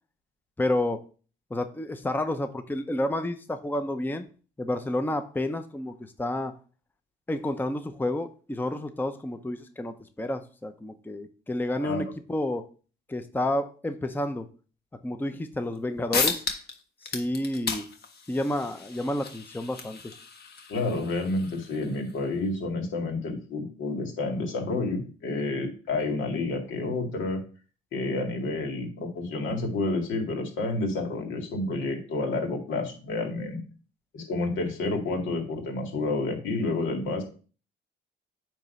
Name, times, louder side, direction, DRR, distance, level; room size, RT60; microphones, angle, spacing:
voice 1, 0.6-1.0 1.5-4.3 4.6-6.5 7.3-12.7 13.1-14.5 15.0-16.4 17.0-17.9 18.3-20.0, left 1 dB, 10° left, 8 dB, 0.6 m, -30 dB
voice 2, 11.8-12.1 20.7-27.4 27.9-33.6 34.1-37.2, left 2 dB, 75° left, 2 dB, 2.1 m, -29 dB
sound 1, 15.8-15.9 16.1-16.8 17.0-22.2, left 5 dB, 55° left, 1.4 m, -34 dB
9.0 x 3.0 x 5.5 m, 0.38 s
cardioid pair, 90°, 20 cm